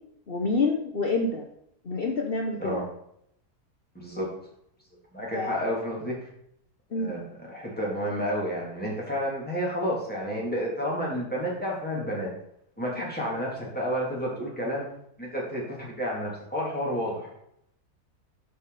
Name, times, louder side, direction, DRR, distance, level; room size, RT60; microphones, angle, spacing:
voice 1, 0.3-1.5 1.8-2.8 5.3-5.7 6.9-7.1 12.9-13.0, left 3 dB, 45° left, 1 dB, 0.9 m, -28 dB
voice 2, 3.9-4.3 5.1-6.3 6.9-12.3 12.8-14.9 15.2-17.3, equal, 5° left, -5 dB, 3.0 m, -30 dB
11.5 x 5.4 x 4.1 m, 0.74 s
omnidirectional pair, 1.7 m